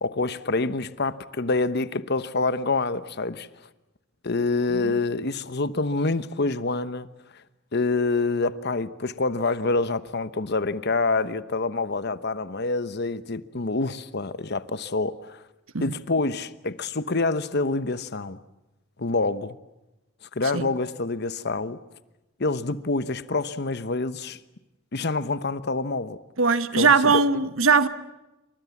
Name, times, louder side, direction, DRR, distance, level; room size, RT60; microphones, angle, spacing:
voice 1, 0.0-3.5 4.2-7.1 7.7-15.4 15.8-18.4 19.0-19.6 20.3-21.8 22.4-24.4 24.9-26.2 26.8-27.2, left 3 dB, 55° left, 1.1 m, -26 dB
voice 2, 26.4-27.9, right 4 dB, 85° right, 1.3 m, -20 dB
28.5 x 24.5 x 7.2 m
head